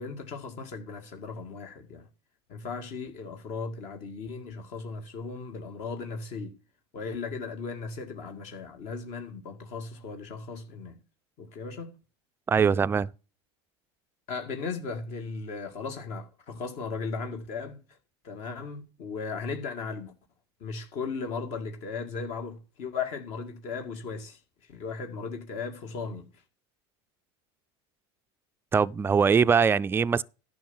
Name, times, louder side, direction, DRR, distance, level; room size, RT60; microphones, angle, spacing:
voice 1, 0.0-2.1 2.5-6.6 6.9-10.9 11.4-11.9 14.3-17.8 18.2-20.1 20.6-26.3, left 4 dB, 55° left, 2.1 m, -36 dB
voice 2, 12.5-13.1 28.7-30.2, right 6 dB, 15° right, 0.4 m, -22 dB
11.0 x 5.7 x 5.6 m
supercardioid pair, 110°, 14 cm